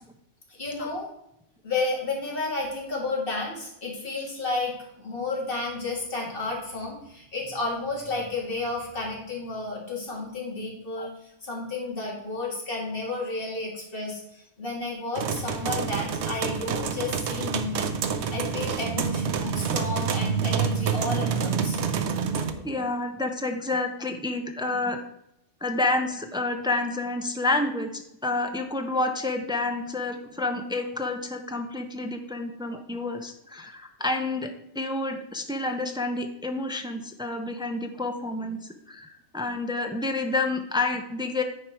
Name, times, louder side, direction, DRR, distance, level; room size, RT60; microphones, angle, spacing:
voice 1, 0.6-1.1 1.6-11.1 11.4-17.9 18.3-21.8, left 3 dB, 45° left, -2 dB, 2.4 m, -32 dB
sound 1, 15.2-22.5, right 6 dB, 70° right, 1.0 m, -27 dB
voice 2, 22.3-25.0 25.6-41.4, left 2 dB, 5° right, 5 dB, 0.3 m, -29 dB
9.6 x 4.7 x 4.5 m, 0.80 s
omnidirectional pair, 1.3 m